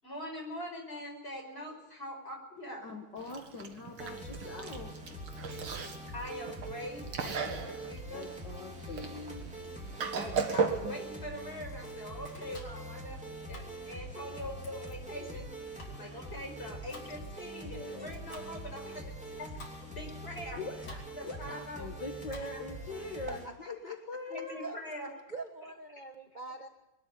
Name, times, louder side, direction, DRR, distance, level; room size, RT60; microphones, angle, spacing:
voice 1, 0.0-2.9 6.1-8.3 10.1-13.2 13.5-15.5 15.8-20.6 21.2-21.9 22.5-22.6 24.3-25.1, left 1 dB, 25° left, 2 dB, 5.7 m, -43 dB
voice 2, 2.8-4.9 7.2-7.6 8.1-9.5 17.6-18.1 20.6-24.7, left 3 dB, 55° left, 3 dB, 2.3 m, -43 dB
Chewing mastication, 3.2-11.1, right 5 dB, 70° right, 2.5 m, -37 dB
sound 1, 4.0-23.5, right 1 dB, 5° right, 3.3 m, -44 dB
Domestic sounds home sounds, 11.5-22.8, left 2 dB, 75° left, 4.5 m, -54 dB
voice 3, 16.0-16.3 23.3-23.9 24.6-24.8 25.3-26.7, right 3 dB, 25° right, 4 dB, 1.2 m, -44 dB
21.5 x 13.5 x 9.9 m, 0.90 s
omnidirectional pair, 2.3 m